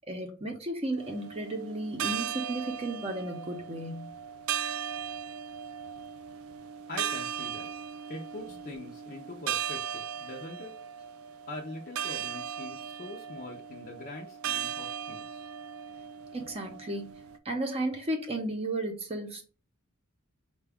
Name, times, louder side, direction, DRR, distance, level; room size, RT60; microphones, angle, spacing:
voice 1, 0.1-4.1 16.3-17.1 17.4-19.4, right 1 dB, 30° right, 0.7 m, -34 dB
sound 1, 1.0-17.4, right 8 dB, 70° right, 0.4 m, -37 dB
voice 2, 6.9-7.7 8.1-10.7 11.5-15.5, left 2 dB, 45° left, 0.6 m, -43 dB
4.8 x 2.3 x 3.5 m
head